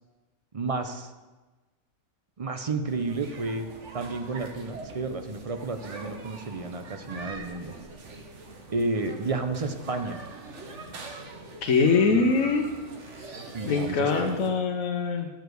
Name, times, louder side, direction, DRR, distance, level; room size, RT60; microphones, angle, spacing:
voice 1, 0.5-1.1 2.4-3.7 3.9-7.7 8.7-10.2 12.1-12.4 13.5-14.5, right 3 dB, 40° right, 7 dB, 0.5 m, -31 dB
sound 1, 2.9-14.5, right 3 dB, 60° right, 1.4 m, -43 dB
voice 2, 11.6-12.7 13.7-15.3, left 4 dB, 75° left, 2 dB, 1.2 m, -23 dB
11.5 x 5.0 x 7.8 m, 1.2 s
omnidirectional pair, 1.4 m